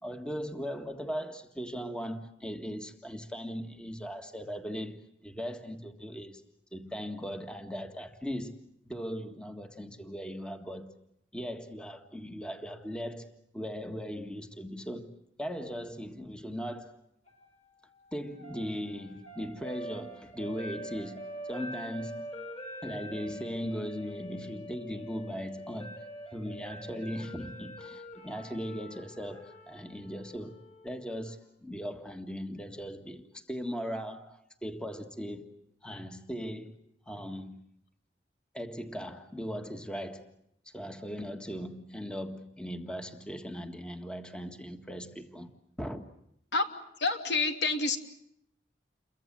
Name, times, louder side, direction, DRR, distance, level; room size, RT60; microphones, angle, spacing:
voice 1, 0.0-5.0 5.2-6.4 6.7-8.6 8.8-10.9 11.3-15.1 15.4-17.0 18.1-22.3 22.8-26.0 26.3-30.6 30.8-35.5 35.8-36.8 37.1-37.6 38.5-40.3 40.6-45.5 45.8-46.0, equal, 5° left, 1.6 m, -38 dB
sound 1, 17.3-31.4, equal, 40° left, 6.9 m, -45 dB
voice 2, 47.0-48.0, left 3 dB, 80° left, 3.0 m, -27 dB
29.0 x 23.5 x 7.5 m
head